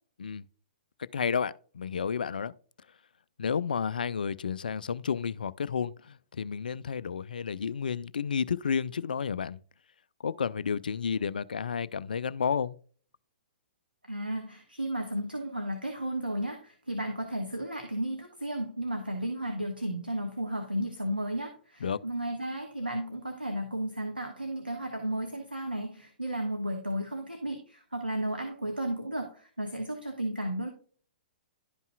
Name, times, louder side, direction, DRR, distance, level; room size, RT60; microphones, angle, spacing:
voice 1, 1.1-2.5 3.4-9.6 10.2-12.8 21.8-22.0, left 6 dB, 65° left, 0.4 m, -31 dB
voice 2, 14.1-30.7, right 1 dB, 90° right, 1.3 m, -33 dB
11.5 x 5.4 x 2.2 m
figure-of-eight pair, 115°, 5 cm